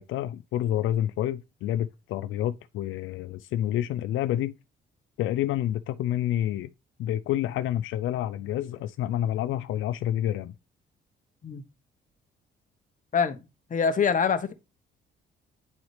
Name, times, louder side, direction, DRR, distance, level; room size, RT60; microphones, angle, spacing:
voice 1, 0.0-4.5 5.2-6.7 7.0-10.5, left 12 dB, 80° left, 0.4 m, -28 dB
voice 2, 13.7-14.5, left 6 dB, 40° left, 1.0 m, -24 dB
9.4 x 4.0 x 3.2 m
cardioid pair, 90°, 20 cm